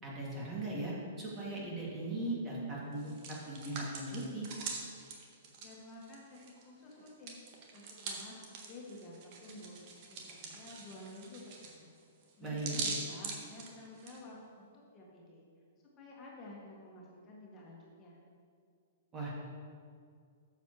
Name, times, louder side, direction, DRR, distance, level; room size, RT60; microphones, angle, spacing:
voice 1, 0.0-3.1 3.5-4.5 12.4-12.8 19.1-19.5, right 2 dB, 25° right, -5 dB, 2.6 m, -38 dB
Hands, 2.9-6.6 6.9-14.2, right 4 dB, 40° right, 1.5 m, -43 dB
voice 2, 5.6-7.4 7.7-9.8 10.1-11.9 12.4-15.5 16.0-18.3, left 2 dB, 25° left, -4 dB, 2.0 m, -51 dB
13.0 x 7.5 x 3.3 m, 2.2 s
figure-of-eight pair, 110°, 0 cm